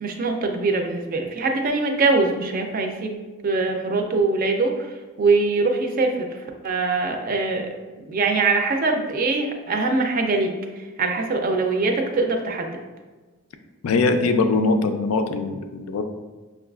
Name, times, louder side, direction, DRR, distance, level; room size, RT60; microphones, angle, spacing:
voice 1, 0.0-6.3 6.6-12.8, right 3 dB, 40° right, 4 dB, 0.4 m, -23 dB
voice 2, 13.8-16.0, left 3 dB, 90° left, 7 dB, 0.4 m, -21 dB
5.8 x 2.3 x 2.3 m, 1.3 s
head